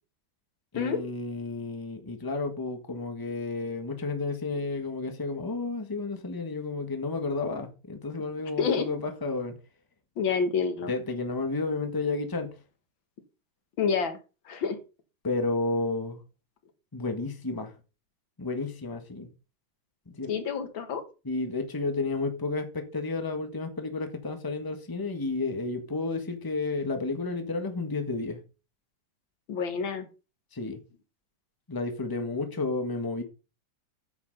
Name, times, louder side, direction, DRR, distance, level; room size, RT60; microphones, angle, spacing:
voice 1, 0.7-9.6 10.9-12.6 15.2-16.2 16.9-17.7 18.4-19.3 20.1-20.3 21.2-28.4 30.5-30.8 31.7-33.2, left 3 dB, 10° left, 1.3 m, -31 dB
voice 2, 8.6-8.9 10.2-10.9 13.8-14.2 14.5-14.8 20.3-21.0 29.5-30.1, left 6 dB, 70° left, 2.1 m, -28 dB
9.6 x 5.8 x 5.5 m
omnidirectional pair, 2.2 m